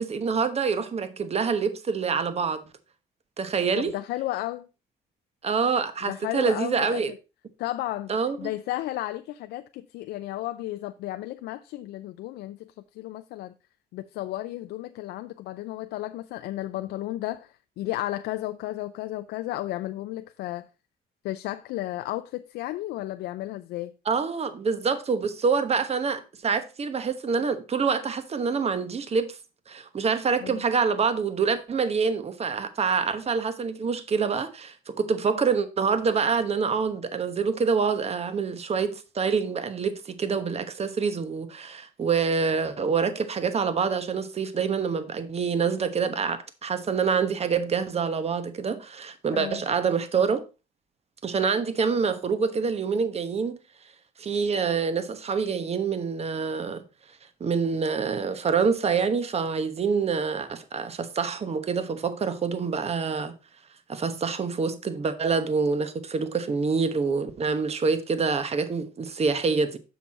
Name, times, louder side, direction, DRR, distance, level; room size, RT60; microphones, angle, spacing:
voice 1, 0.0-2.7 3.4-3.9 5.4-7.1 8.1-8.5 24.1-29.4 29.7-50.4 51.2-53.6 54.2-56.8 57.4-63.3 63.9-69.8, right 5 dB, 40° right, 1.1 m, -26 dB
voice 2, 3.8-4.7 6.1-7.0 7.6-8.1 8.4-13.5 13.9-20.6 21.2-23.9 30.4-30.6 49.3-49.6, left 15 dB, 90° left, 0.4 m, -33 dB
7.1 x 6.0 x 4.2 m
cardioid pair, 95°, 17 cm